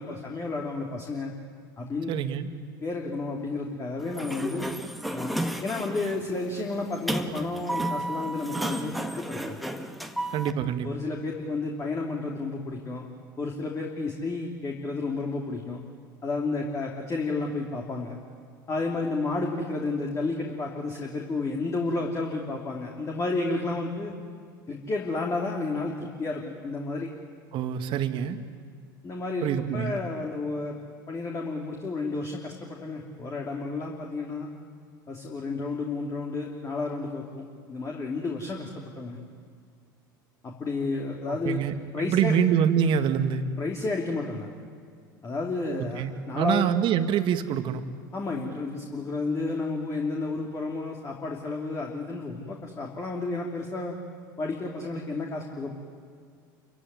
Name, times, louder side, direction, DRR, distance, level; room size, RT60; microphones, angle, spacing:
voice 1, 0.0-1.3 1.8-2.1 2.8-4.7 5.1-5.3 5.6-9.6 10.8-13.1 13.4-15.8 16.2-18.2 18.7-24.1 24.7-27.1 29.0-30.7 31.1-34.5 35.1-39.2 40.4-41.6 41.9-42.3 43.6-44.5 45.2-46.7 48.1-54.0 54.4-55.8, left 3 dB, 25° left, 0 dB, 3.2 m, -31 dB
voice 2, 2.1-2.5 10.3-10.9 27.5-28.4 29.4-30.0 41.3-41.7 42.0-43.5 46.0-47.8, right 8 dB, 50° right, 9 dB, 1.8 m, -25 dB
Sliding door, 4.0-10.5, right 1 dB, ahead, 1.7 m, -33 dB
28.5 x 16.0 x 9.8 m, 2.1 s
hypercardioid pair, 80°, 11 cm